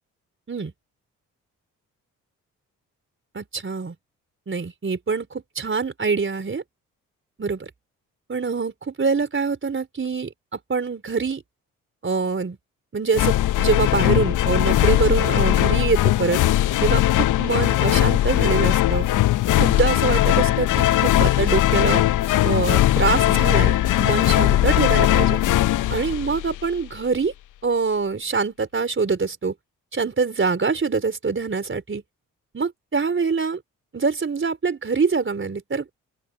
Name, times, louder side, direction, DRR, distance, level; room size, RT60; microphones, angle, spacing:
voice 1, 3.3-3.9 4.5-6.6 7.4-7.7 8.3-10.3 10.7-11.4 12.0-12.6 12.9-16.4 16.8-19.1 19.6-22.0 22.4-25.4 25.9-27.3 27.6-29.5 29.9-32.0 32.5-33.6 33.9-35.9, right 4 dB, 35° right, 4.4 m, -24 dB
sound 1, 13.1-26.8, left 14 dB, 65° left, 0.7 m, -19 dB
open air
supercardioid pair, 55°, 34 cm